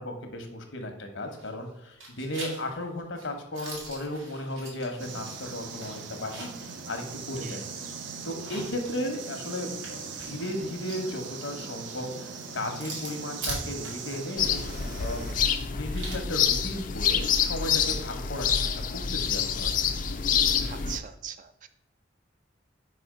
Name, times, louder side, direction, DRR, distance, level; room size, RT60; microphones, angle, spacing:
voice 1, 0.0-7.7 8.2-14.6 15.0-15.2 15.6-19.8, left 1 dB, 75° left, 5 dB, 1.0 m, -35 dB
sound 1, 1.3-1.7 2.0-6.7 7.1-7.2 8.2-17.5, right 2 dB, 90° right, 2.1 m, -43 dB
sound 2, 5.0-15.3, right 5 dB, 75° right, 0.7 m, -40 dB
sound 3, 14.4-21.0, left 7 dB, 45° left, 0.4 m, -27 dB
voice 2, 20.6-21.7, right 8 dB, 45° right, 10 dB, 0.4 m, -40 dB
4.8 x 4.2 x 4.9 m, 0.85 s
head